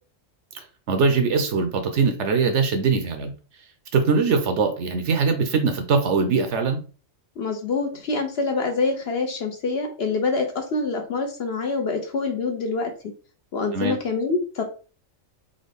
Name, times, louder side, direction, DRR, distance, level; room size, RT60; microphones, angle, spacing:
voice 1, 0.5-3.3 3.9-6.8 13.7-14.0, right 4 dB, 65° right, 7 dB, 0.9 m, -22 dB
voice 2, 7.4-12.9 13.5-14.6, left 3 dB, 60° left, 4 dB, 0.7 m, -25 dB
3.7 x 2.2 x 3.4 m, 0.37 s
omnidirectional pair, 1.4 m